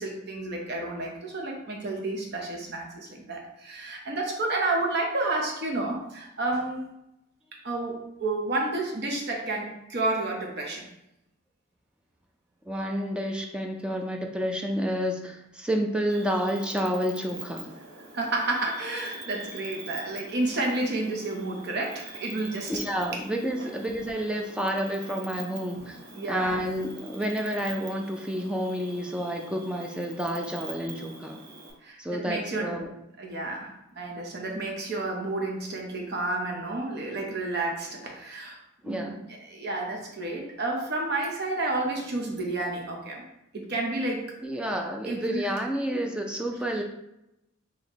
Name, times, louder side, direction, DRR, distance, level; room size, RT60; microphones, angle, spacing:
voice 1, 0.0-6.8 7.6-10.9 18.1-22.7 23.1-23.2 23.6-23.7 26.1-26.6 31.8-32.8 33.2-38.6 38.8-43.2 43.5-44.3 45.0-45.5, right 2 dB, 55° right, 0 dB, 0.8 m, -30 dB
voice 2, 12.7-17.7 22.7-26.0 26.3-31.4 32.0-32.9 38.8-39.2 44.4-46.8, equal, 5° right, 2 dB, 0.3 m, -30 dB
Cricket, 16.1-31.7, right 3 dB, 85° right, 1.0 m, -45 dB
4.2 x 2.8 x 3.0 m, 0.86 s
head